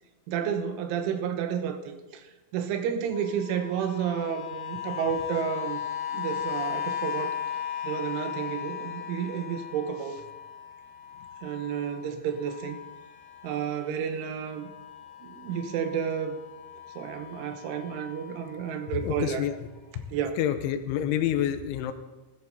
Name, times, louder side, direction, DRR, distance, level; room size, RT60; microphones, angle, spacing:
voice 1, 0.3-2.3 2.5-5.8 6.1-7.4 7.8-10.2 11.4-12.8 13.4-14.7 15.2-16.4 17.0-19.5 20.1-20.4, right 8 dB, 85° right, 7 dB, 3.4 m, -31 dB
sound 1, 3.1-14.1 14.5-19.1 19.8-19.9, left 9 dB, 55° left, 1.9 m, -37 dB
voice 2, 18.9-19.6 20.0-20.1 20.4-21.9, left 10 dB, 85° left, 9 dB, 3.1 m, -28 dB
14.5 x 14.0 x 4.1 m, 1.1 s
omnidirectional pair, 5.6 m